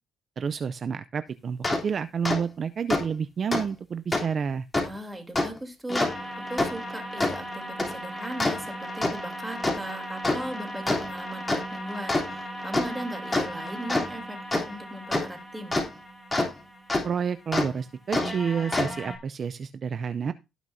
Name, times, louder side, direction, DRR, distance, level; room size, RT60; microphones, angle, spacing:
voice 1, 0.4-4.7 17.0-20.3, right 6 dB, 50° right, 13 dB, 0.5 m, -29 dB
sound 1, 1.6-1.8 2.2-2.4 2.9-3.0 3.5-3.6 4.1-4.2 4.7-4.8 5.3-5.5 5.9-16.5 16.9-17.0 17.5-17.7 18.1-19.2, left 2 dB, 20° left, 3.2 m, -29 dB
voice 2, 4.8-15.8, right 1 dB, 15° right, 3 dB, 3.1 m, -38 dB
17.5 x 6.0 x 2.7 m, 0.26 s
cardioid pair, 90°, 0 cm